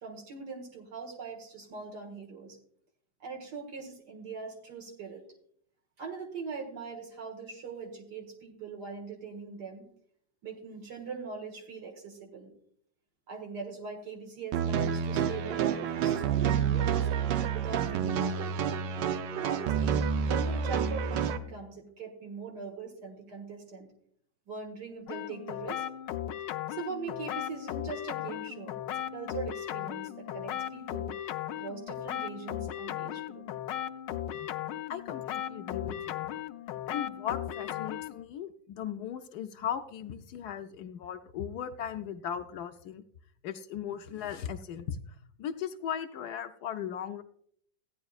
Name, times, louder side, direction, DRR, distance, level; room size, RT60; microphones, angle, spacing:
voice 1, 0.0-2.6 3.2-5.2 6.0-9.9 10.4-12.5 13.3-17.1 17.5-18.9 19.4-23.9 24.5-25.8 26.7-31.1 31.5-33.5, right 5 dB, 70° right, 1 dB, 2.3 m, -41 dB
sound 1, 14.5-21.4, right 7 dB, 85° right, 1.3 m, -29 dB
sound 2, 25.1-38.3, left 11 dB, 90° left, 1.3 m, -37 dB
voice 2, 34.9-36.3 36.9-43.0 43.4-45.0 45.4-47.2, left 9 dB, 75° left, 8 dB, 1.0 m, -37 dB
15.0 x 9.8 x 2.4 m, 0.65 s
omnidirectional pair, 1.9 m